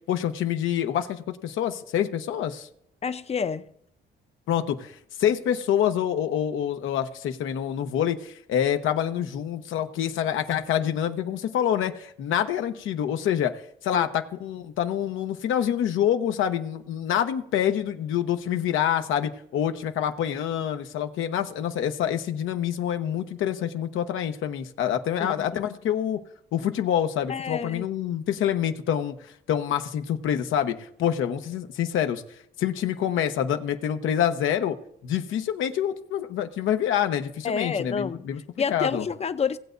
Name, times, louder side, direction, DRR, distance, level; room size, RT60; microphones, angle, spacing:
voice 1, 0.1-2.7 4.5-26.2 26.5-29.2 29.5-32.2 32.6-34.8 35.0-38.4 38.7-39.1, left 10 dB, 80° left, 0.9 m, -26 dB
voice 2, 3.0-3.7 13.9-14.1 25.2-25.5 27.3-27.8 37.4-38.3 38.6-39.6, left 6 dB, 30° left, 0.6 m, -28 dB
18.5 x 7.9 x 2.6 m
cardioid pair, 90°, 20 cm